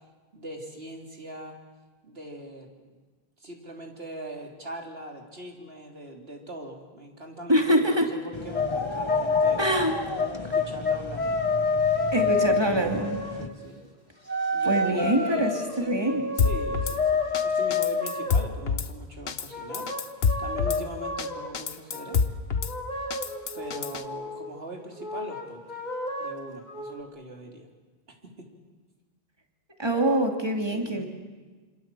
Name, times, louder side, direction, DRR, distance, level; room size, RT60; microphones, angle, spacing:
voice 1, 0.3-1.6 2.0-2.7 3.4-9.6 10.4-11.4 12.1-13.9 14.5-19.9 20.4-22.2 23.5-25.6 26.2-27.7 28.2-28.5 30.7-31.1, right 1 dB, 75° right, 1 dB, 3.8 m, -41 dB
voice 2, 7.5-8.1 9.6-9.9 12.1-13.2 14.6-15.5 15.8-16.2 29.8-31.0, right 1 dB, 25° right, 3 dB, 2.8 m, -24 dB
sound 1, 8.3-13.5, left 2 dB, 30° left, 1.2 m, -35 dB
sound 2, 8.5-8.8 9.1-9.7 10.2-13.5 14.3-18.5 19.5-21.5 21.9-22.2 22.5-24.5 25.0-27.0, left 4 dB, 45° left, 2.9 m, -28 dB
Drum kit / Snare drum, 16.4-17.0 17.3-17.4 17.7-18.9 19.3-19.5 19.7-20.8 21.2-21.3 21.5-22.7 23.1-24.0, left 5 dB, 70° left, 1.3 m, -26 dB
27.0 x 25.5 x 7.7 m, 1.3 s
omnidirectional pair, 1.0 m